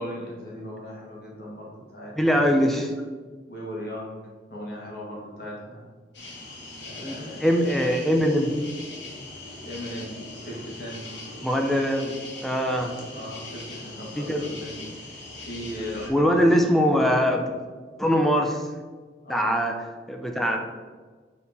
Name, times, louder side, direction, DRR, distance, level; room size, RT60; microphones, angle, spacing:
voice 1, 0.0-2.4 3.5-5.8 6.8-7.8 9.6-10.2 10.4-11.1 13.1-14.8 15.4-16.5 19.2-19.6, equal, 60° left, -3 dB, 1.7 m, -38 dB
voice 2, 2.1-2.9 7.0-8.5 11.4-12.2 12.4-12.9 14.2-14.4 16.1-17.5 18.0-18.6 19.3-19.7 20.1-20.6, equal, ahead, 2 dB, 0.6 m, -22 dB
sound 1, 6.1-16.1, left 2 dB, 85° left, 1.7 m, -40 dB
7.2 x 4.2 x 4.2 m, 1.4 s
head